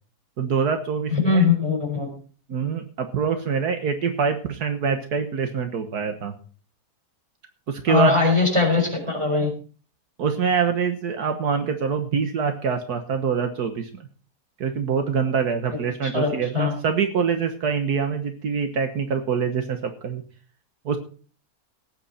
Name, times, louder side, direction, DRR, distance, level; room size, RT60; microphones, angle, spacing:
voice 1, 0.4-1.5 2.5-6.4 7.7-8.4 10.2-13.9 14.6-20.2 20.8-21.0, right 6 dB, 75° right, 7 dB, 1.8 m, -25 dB
voice 2, 1.1-2.1 7.9-9.5 16.1-16.7, left 4 dB, 20° right, 2 dB, 4.7 m, -21 dB
18.5 x 9.2 x 4.2 m, 0.40 s
omnidirectional pair, 1.7 m